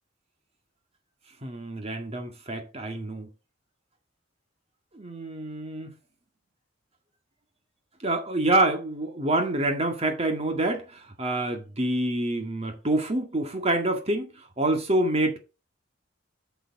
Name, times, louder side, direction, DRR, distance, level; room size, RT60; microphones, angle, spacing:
voice 1, 1.4-3.3 4.9-5.9 8.0-14.3 14.6-15.4, right 1 dB, 30° right, 1.8 m, -27 dB
6.8 x 6.7 x 4.8 m
head